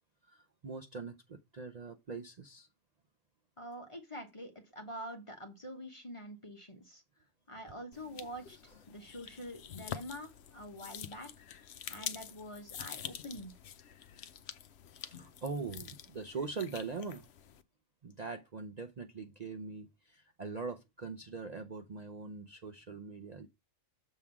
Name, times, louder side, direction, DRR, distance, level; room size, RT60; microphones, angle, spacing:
voice 1, 0.3-2.7 15.1-17.3 18.0-23.5, right 4 dB, 50° right, 0.5 m, -42 dB
voice 2, 3.6-7.0 7.5-11.3 11.9-13.5, equal, 25° left, 1.3 m, -46 dB
sound 1, 7.9-17.6, left 9 dB, 60° left, 0.8 m, -47 dB
7.3 x 3.6 x 5.8 m
omnidirectional pair, 1.4 m